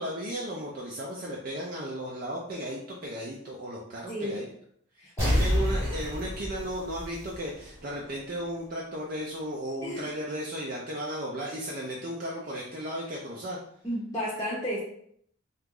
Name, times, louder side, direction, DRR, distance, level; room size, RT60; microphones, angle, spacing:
voice 1, 0.0-4.4 5.2-13.6, equal, 40° right, -3 dB, 0.4 m, -35 dB
voice 2, 4.1-4.4 5.0-5.4 9.8-10.1 13.8-14.8, equal, 15° left, -7 dB, 0.5 m, -32 dB
sound 1, 5.2-7.8 8.1-8.2, equal, 15° right, 1.1 m, -28 dB
2.9 x 2.4 x 3.6 m, 0.67 s
head